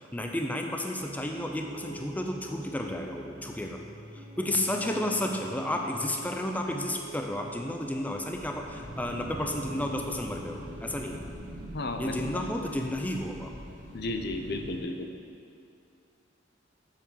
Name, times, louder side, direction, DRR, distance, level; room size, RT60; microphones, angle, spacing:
voice 1, 0.1-3.8 4.1-11.2 12.0-13.5, left 1 dB, 10° left, 2 dB, 0.6 m, -32 dB
Piano, 1.0-11.3, right 1 dB, 25° right, 1.8 m, -46 dB
sound 1, 8.3-14.8, equal, 75° right, 2.4 m, -43 dB
voice 2, 11.7-12.2 13.9-15.1, left 2 dB, 60° left, 5 dB, 0.7 m, -33 dB
7.6 x 7.5 x 6.8 m, 2.5 s
head